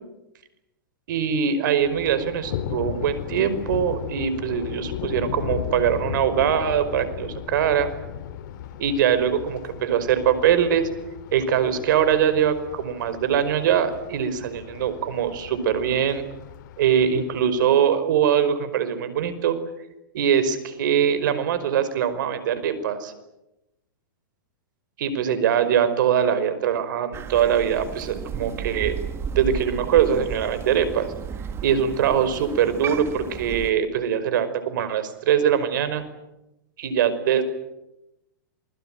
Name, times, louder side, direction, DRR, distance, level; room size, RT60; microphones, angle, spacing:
voice 1, 1.1-7.9 8.8-10.9 11.3-16.2 16.8-19.6 20.1-23.1 25.0-29.0 29.4-31.1 31.6-36.0 36.8-37.4, right 8 dB, 65° right, 12 dB, 5.3 m, -22 dB
Thunder, 1.8-17.7, left 11 dB, 60° left, 2.5 m, -36 dB
Crow, 27.1-33.7, right 7 dB, 25° right, 2.1 m, -33 dB
28.0 x 22.0 x 9.1 m, 0.92 s
hypercardioid pair, 130°, 11 cm